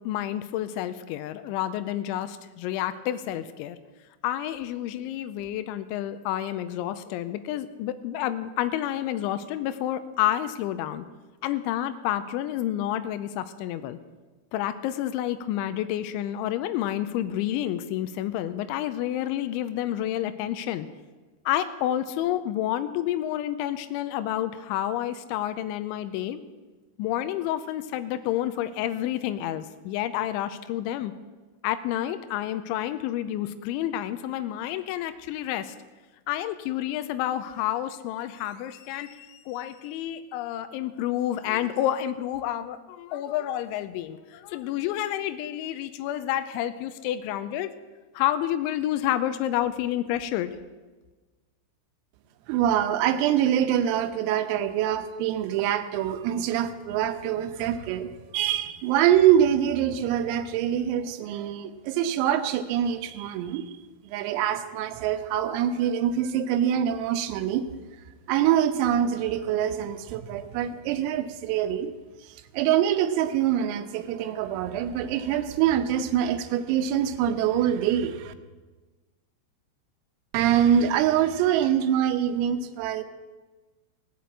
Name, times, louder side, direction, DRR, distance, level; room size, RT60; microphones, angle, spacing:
voice 1, 0.1-3.8 4.2-11.0 11.4-14.0 14.5-20.9 21.5-26.4 27.0-31.1 31.6-35.8 36.3-47.7 48.1-50.6, left 12 dB, 85° left, 10 dB, 2.7 m, -29 dB
voice 2, 52.5-63.7 64.1-67.7 68.3-71.9 72.5-78.3 80.3-83.0, right 10 dB, 85° right, 8 dB, 3.5 m, -24 dB
17.5 x 7.7 x 8.3 m, 1.3 s
omnidirectional pair, 6.0 m